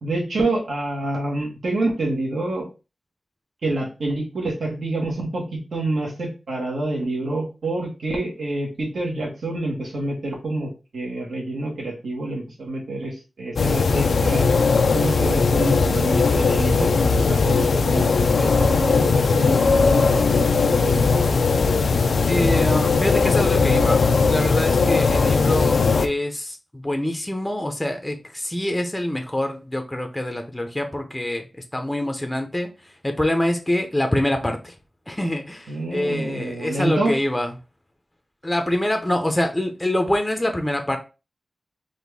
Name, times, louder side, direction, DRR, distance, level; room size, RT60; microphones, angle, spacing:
voice 1, 0.0-2.7 3.6-14.5 14.9-21.1 35.7-37.1, right 2 dB, 85° right, -2 dB, 1.5 m, -27 dB
sound 1, 13.6-26.1, left 4 dB, 90° left, 0.4 m, -19 dB
voice 2, 22.3-24.0 24.3-31.4 31.7-32.7 33.0-34.7 35.1-37.5 38.4-41.0, left 1 dB, 10° left, 4 dB, 0.5 m, -25 dB
4.1 x 2.6 x 3.4 m, 0.30 s
wide cardioid pair, 125°, 0 cm